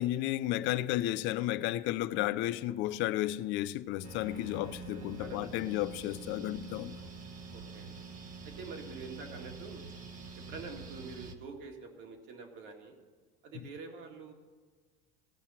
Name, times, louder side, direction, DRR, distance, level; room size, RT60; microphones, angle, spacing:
voice 1, 0.0-7.0, left 14 dB, 65° left, 0.5 m, -33 dB
sound 1, 4.0-11.3, right 4 dB, 40° right, 1.2 m, -46 dB
voice 2, 4.3-5.7 6.9-8.0 8.4-9.8 10.5-13.0 13.4-14.3, right 4 dB, 65° right, 2.2 m, -47 dB
17.0 x 5.7 x 5.7 m
supercardioid pair, 110°, 21 cm